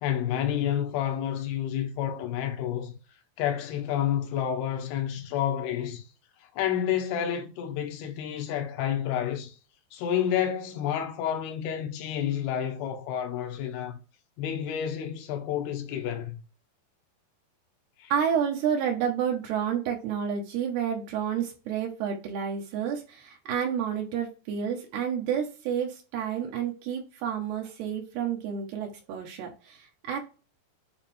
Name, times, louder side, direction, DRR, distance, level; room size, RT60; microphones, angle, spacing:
voice 1, 0.0-2.9 3.4-6.0 6.6-9.5 9.9-14.0 14.4-16.4 18.0-18.1, left 10 dB, 75° left, 2.9 m, -29 dB
voice 2, 18.1-30.2, right 8 dB, 75° right, 3.2 m, -30 dB
8.7 x 3.2 x 3.4 m
omnidirectional pair, 4.8 m